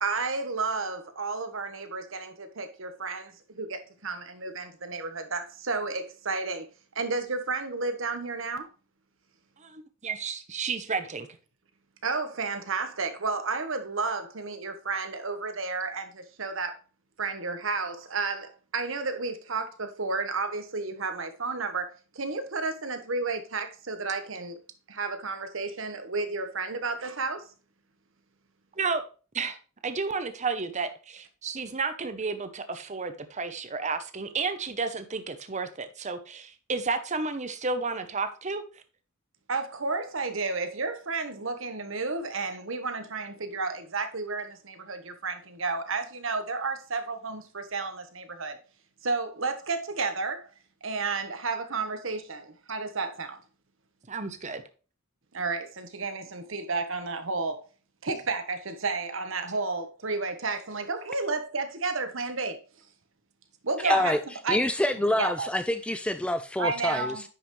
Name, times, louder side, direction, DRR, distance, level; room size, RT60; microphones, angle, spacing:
voice 1, 0.0-6.7 6.9-8.7 12.0-16.8 17.2-21.9 22.1-24.6 24.9-27.5 39.5-48.6 49.0-50.5 50.8-53.4 55.3-57.6 58.0-62.6 63.6-64.1 64.4-64.6 65.2-65.5 66.6-67.2, right 4 dB, 60° right, 1.3 m, -32 dB
voice 2, 9.6-11.3 28.8-29.0 29.3-29.6 29.8-38.6 54.1-54.6 63.8-64.0, right 4 dB, 35° right, 0.8 m, -31 dB
voice 3, 63.9-64.2 64.5-67.2, left 1 dB, 5° left, 0.3 m, -26 dB
10.0 x 5.7 x 3.2 m
head